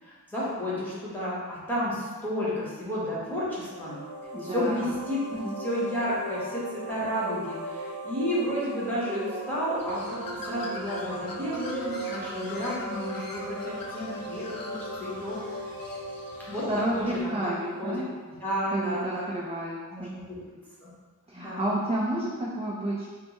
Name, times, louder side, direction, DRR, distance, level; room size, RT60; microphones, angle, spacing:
voice 1, 0.0-4.0 4.4-5.2 5.6-15.7 16.5-16.6 17.0-17.5 17.8-18.0 18.4-19.2 19.9-20.4 20.8-20.9 21.3-21.7, equal, 5° left, -8 dB, 1.3 m, -32 dB
sound 1, 3.6-18.2, right 1 dB, 70° right, 0.8 m, -38 dB
voice 2, 4.3-4.9 5.3-5.5 16.7-18.1 18.7-20.1 21.3-23.1, right 1 dB, 20° right, -4 dB, 0.4 m, -30 dB
Bird, 9.8-17.2, left 2 dB, 70° left, 0.5 m, -43 dB
3.3 x 2.1 x 3.1 m, 1.4 s
wide cardioid pair, 50°, 35 cm